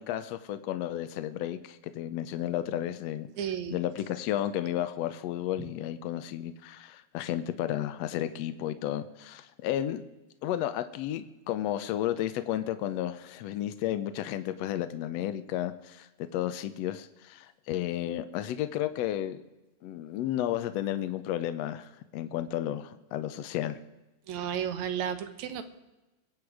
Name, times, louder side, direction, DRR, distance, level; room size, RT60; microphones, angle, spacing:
voice 1, 0.0-3.3 3.7-10.0 10.4-19.4 19.8-23.8, left 12 dB, 75° left, 10 dB, 1.7 m, -32 dB
voice 2, 3.4-3.8 24.3-25.6, right 9 dB, 75° right, 9 dB, 2.4 m, -33 dB
23.0 x 8.1 x 4.9 m, 1.0 s
omnidirectional pair, 3.3 m